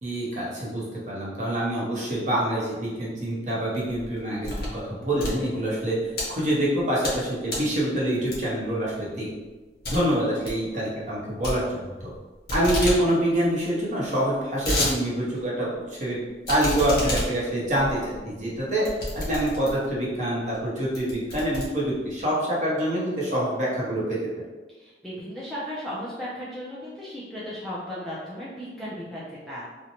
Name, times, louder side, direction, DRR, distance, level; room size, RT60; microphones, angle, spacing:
voice 1, 0.0-6.0 6.3-9.3 9.9-11.9 12.5-15.7 16.0-16.2 16.5-18.0 18.3-18.9 19.1-24.2, right 1 dB, 40° right, -6 dB, 0.8 m, -26 dB
sound 1, 3.8-4.8 5.1-6.2 6.7-7.2 7.5-7.8 8.3-8.7 9.1-9.2 9.5-9.6 9.8-10.0 10.3-10.6 11.4-12.2 12.5-13.0 13.3-13.4 13.6-13.7 14.2-14.9 15.4-15.5 16.4-19.9 20.5-20.6 20.9-22.2, left 1 dB, 60° left, 0.9 m, -30 dB
voice 2, 24.7-29.7, equal, ahead, -9 dB, 0.4 m, -36 dB
2.5 x 2.1 x 2.8 m, 1.3 s
head